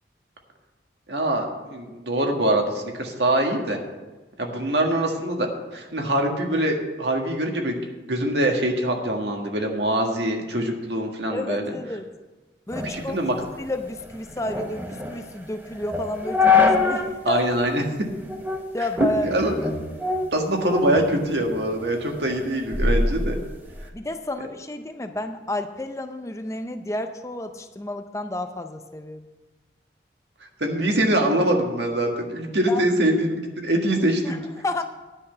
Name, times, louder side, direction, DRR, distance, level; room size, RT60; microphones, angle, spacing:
voice 1, 1.1-3.8 4.4-7.8 8.1-11.7 12.8-13.3 17.2-17.8 19.2-19.5 20.3-23.4 30.6-34.3, right 1 dB, 75° right, 2 dB, 1.6 m, -24 dB
voice 2, 11.3-12.1 12.7-17.4 18.7-19.3 23.9-29.2 32.7-32.8 34.2-34.4 34.6-34.8, left 1 dB, 15° left, 7 dB, 0.5 m, -31 dB
sound 1, 12.7-17.2 17.5-17.6 18.3-18.6 19.0-21.1 21.5-23.9, left 4 dB, 10° right, 0.8 m, -25 dB
10.0 x 5.9 x 8.2 m, 1.2 s
head